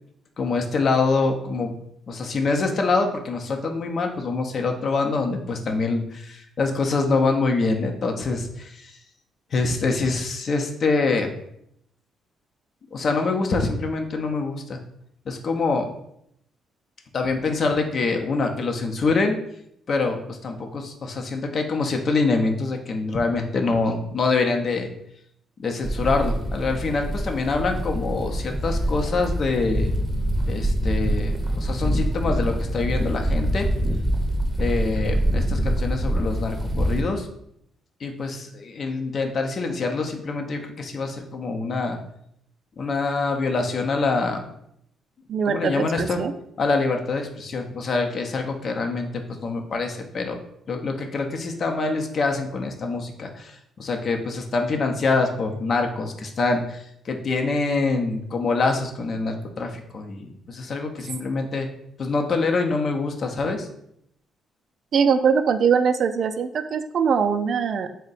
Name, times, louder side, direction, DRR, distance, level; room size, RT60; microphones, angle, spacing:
voice 1, 0.4-1.7 2.1-8.9 9.5-11.3 12.9-14.8 15.3-15.9 17.1-19.4 19.9-24.9 25.6-29.9 30.5-33.7 34.6-37.3 38.0-42.0 42.8-44.4 45.5-46.2 46.6-50.4 50.7-61.7 62.0-63.7, left 3 dB, 50° left, 4 dB, 0.6 m, -25 dB
sound 1, 25.8-37.0, right 1 dB, 10° right, 0.6 m, -25 dB
voice 2, 45.3-46.3 64.9-67.9, right 6 dB, 60° right, 9 dB, 0.3 m, -22 dB
3.6 x 2.1 x 4.0 m, 0.74 s
cardioid pair, 90°, 0 cm